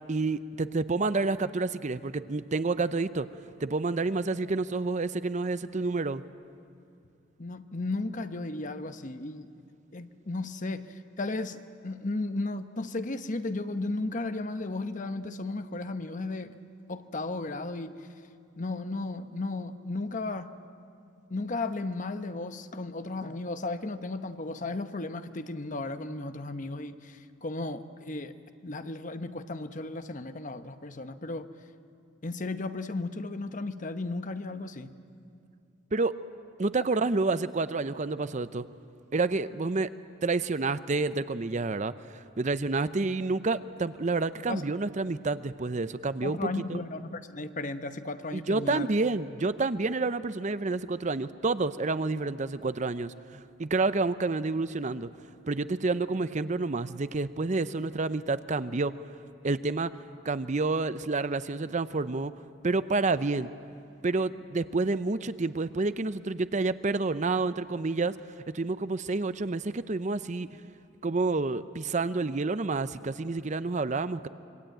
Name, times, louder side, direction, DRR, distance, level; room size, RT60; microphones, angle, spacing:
voice 1, 0.1-3.3 3.6-6.2 35.9-36.1 36.6-38.7 39.1-39.9 40.2-46.8 48.3-55.1 55.5-58.9 59.4-59.9 60.2-62.3 62.6-63.5 64.0-68.1 68.5-70.5 71.0-74.3, right 3 dB, 40° right, 13 dB, 0.6 m, -29 dB
voice 2, 7.4-9.5 9.9-16.6 16.9-18.1 18.6-20.5 21.3-28.3 28.6-31.5 32.2-34.9 44.5-44.6 46.2-48.9, left 2 dB, 40° left, 9 dB, 1.0 m, -35 dB
25.5 x 23.5 x 9.1 m, 2.5 s
head